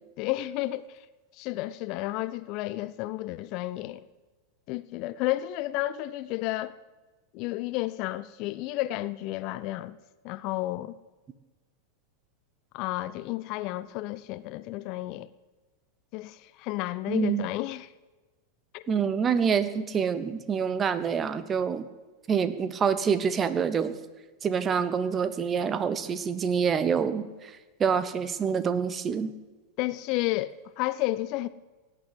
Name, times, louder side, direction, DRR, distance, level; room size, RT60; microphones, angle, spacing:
voice 1, 0.2-1.0 1.4-4.0 4.7-6.7 7.3-10.0 10.2-11.0 12.7-15.3 16.1-17.9 18.7-18.8 29.8-31.5, left 17 dB, 40° left, 0.5 m, -32 dB
voice 2, 17.1-17.5 18.9-21.9 22.3-24.0 24.4-27.5 27.8-29.3, right 6 dB, 25° right, 1.1 m, -26 dB
17.5 x 9.9 x 8.0 m
figure-of-eight pair, 90°, 0 cm